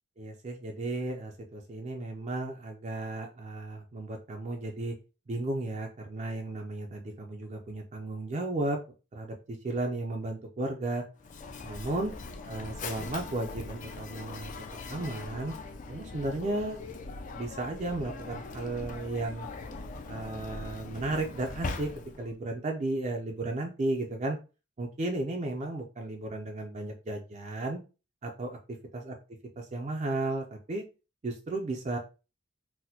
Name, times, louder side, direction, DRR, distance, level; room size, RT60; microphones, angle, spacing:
voice 1, 0.2-4.9 5.3-8.8 9.1-11.0 11.6-12.1 12.5-14.5 14.8-15.5 15.9-16.8 17.3-19.5 20.1-21.9 22.2-24.4 24.8-27.8 28.2-28.6 28.9-29.1 29.6-30.8 31.2-32.0, right 2 dB, 35° right, 2 dB, 0.4 m, -34 dB
Mechanisms, 11.2-22.3, left 3 dB, 40° left, 0.4 m, -41 dB
4.1 x 2.1 x 2.7 m, 0.32 s
head